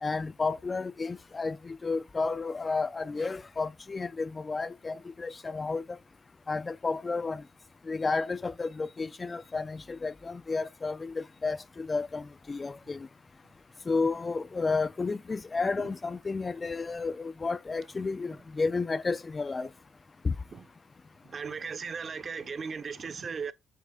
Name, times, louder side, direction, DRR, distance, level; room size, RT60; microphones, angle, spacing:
voice 1, 0.0-5.8 6.5-7.4 7.9-13.1 13.9-19.7 20.2-20.3, left 4 dB, 30° left, 0.4 m, -32 dB
voice 2, 21.3-23.5, right 5 dB, 45° right, 0.8 m, -37 dB
8.3 x 3.2 x 3.6 m
cardioid pair, 90°, 0 cm